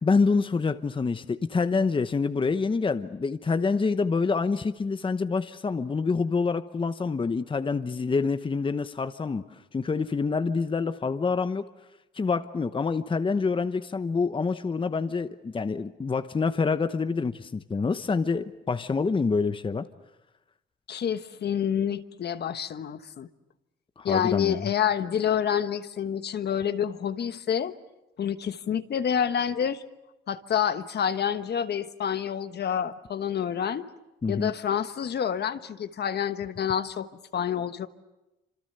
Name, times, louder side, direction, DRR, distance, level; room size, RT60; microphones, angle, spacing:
voice 1, 0.0-9.4 9.7-11.7 12.1-19.9 24.0-24.6 34.2-34.5, left 4 dB, 25° left, 10 dB, 0.9 m, -26 dB
voice 2, 20.9-23.3 24.0-27.7 28.2-29.8 30.3-33.9 34.3-37.1 37.3-37.9, left 8 dB, 55° left, 10 dB, 1.3 m, -28 dB
27.0 x 26.5 x 6.8 m, 0.98 s
cardioid pair, 90°, 20 cm